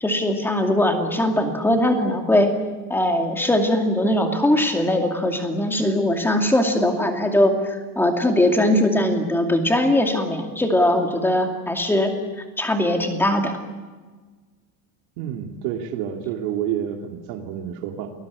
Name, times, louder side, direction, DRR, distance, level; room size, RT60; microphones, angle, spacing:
voice 1, 0.0-2.5 2.9-12.1 12.6-13.5, left 1 dB, 5° left, 4 dB, 2.5 m, -20 dB
voice 2, 15.2-18.1, right 9 dB, 60° right, 3 dB, 3.0 m, -29 dB
29.0 x 20.5 x 8.5 m, 1.3 s
cardioid pair, 175°, 45 cm